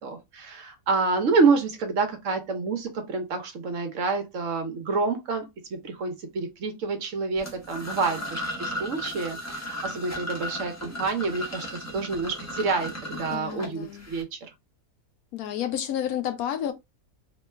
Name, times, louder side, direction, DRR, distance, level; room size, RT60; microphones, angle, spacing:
voice 1, 0.0-14.5, right 4 dB, 65° right, 1.0 m, -28 dB
sound 1, 7.4-14.2, equal, 20° left, 0.5 m, -36 dB
voice 2, 13.3-14.1 15.3-16.7, left 10 dB, 80° left, 1.0 m, -30 dB
3.0 x 2.2 x 3.2 m
omnidirectional pair, 1.6 m